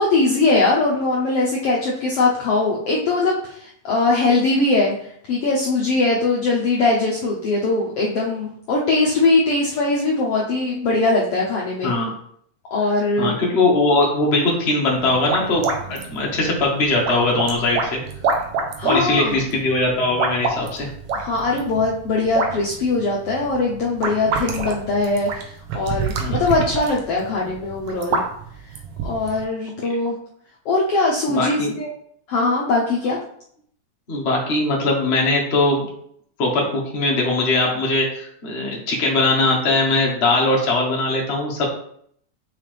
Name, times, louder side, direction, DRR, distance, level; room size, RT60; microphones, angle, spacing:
voice 1, 0.0-4.9 5.3-11.9 12.7-13.3 18.8-19.4 21.1-28.2 29.0-30.2 30.6-31.9 32.3-33.2, left 3 dB, 75° left, -4 dB, 1.4 m, -21 dB
voice 2, 13.2-18.0 18.8-20.9 26.2-26.4 31.3-31.7 34.1-35.9 36.4-41.6, left 2 dB, 45° left, -2 dB, 0.8 m, -20 dB
sound 1, 14.9-29.4, right 4 dB, 75° right, 1.4 m, -28 dB
6.6 x 5.0 x 3.4 m, 0.66 s
omnidirectional pair, 3.8 m